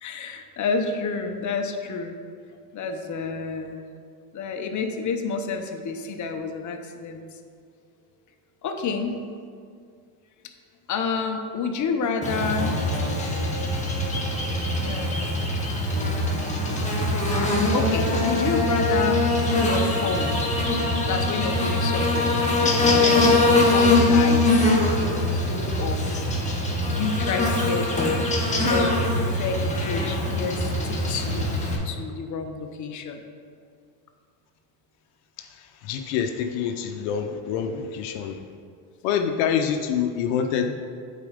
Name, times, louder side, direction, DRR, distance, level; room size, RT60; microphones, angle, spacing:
voice 1, 0.0-2.2 2.7-3.8 4.3-7.4 8.6-9.2 10.9-12.7 14.8-15.3 15.9-16.1 17.7-19.3 19.6-20.5 21.1-24.7 25.0-26.2 26.9-28.3 28.6-31.5 31.8-33.2, left 4 dB, 40° left, 5 dB, 0.9 m, -29 dB
Buzz, 12.2-31.8, left 2 dB, 15° left, 1.5 m, -23 dB
voice 2, 35.8-38.4 39.0-40.7, left 7 dB, 75° left, 6 dB, 0.7 m, -26 dB
8.3 x 4.2 x 5.0 m, 2.2 s
supercardioid pair, 95°, 47 cm